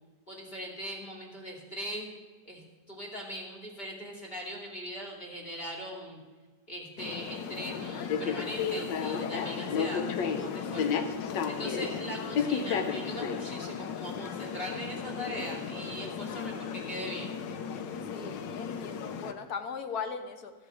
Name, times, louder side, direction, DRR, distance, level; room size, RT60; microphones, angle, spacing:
voice 1, 0.3-2.1 2.4-6.2 6.7-10.0 10.3-11.0 11.4-17.3, equal, 30° left, 0 dB, 2.9 m, -40 dB
sound 1, 7.0-19.3, left 6 dB, 85° left, 1.5 m, -33 dB
voice 2, 18.1-20.5, left 5 dB, 65° left, 8 dB, 1.5 m, -38 dB
13.5 x 8.0 x 7.1 m, 1.4 s
omnidirectional pair, 1.9 m